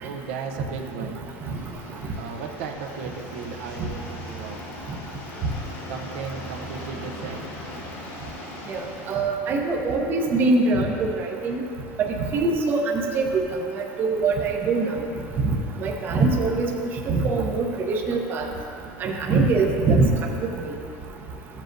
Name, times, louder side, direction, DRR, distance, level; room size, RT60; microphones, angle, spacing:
voice 1, 0.0-1.2 2.1-4.7 5.9-7.4, right 5 dB, 90° right, 3 dB, 0.8 m, -35 dB
sound 1, 1.3-9.3, left 1 dB, 85° left, 2.1 m, -39 dB
voice 2, 8.7-11.6 12.3-13.4 14.0-14.9 15.8-16.7 17.1-18.5 19.0-20.1, right 3 dB, 30° right, 1 dB, 0.7 m, -23 dB
13.5 x 7.4 x 2.6 m, 2.7 s
cardioid pair, 165°, 7 cm